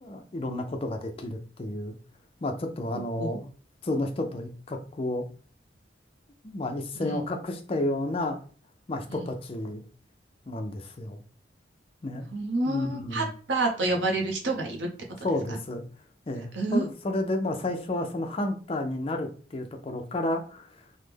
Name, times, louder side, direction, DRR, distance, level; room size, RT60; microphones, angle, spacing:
voice 1, 0.0-1.9 2.4-3.5 3.8-5.3 6.4-8.4 8.9-9.8 10.5-11.2 12.0-12.3 12.7-13.3 15.2-15.8 16.3-20.7, left 1 dB, 30° left, 4 dB, 0.4 m, -31 dB
voice 2, 2.9-3.4 7.0-7.2 9.1-9.3 12.3-14.9 15.2-15.6 16.5-16.9, right 2 dB, 85° right, 2 dB, 0.7 m, -29 dB
3.2 x 2.0 x 3.4 m, 0.41 s
head